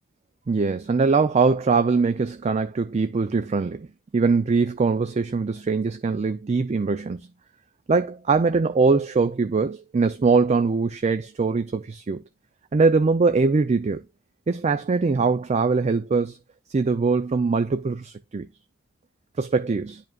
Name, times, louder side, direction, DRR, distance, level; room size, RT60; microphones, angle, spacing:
voice 1, 0.5-3.9 4.1-7.3 7.9-12.2 12.7-14.0 14.5-16.4 16.7-18.5 19.4-20.0, right 4 dB, 30° right, 0.3 m, -22 dB
10.5 x 5.1 x 2.3 m
head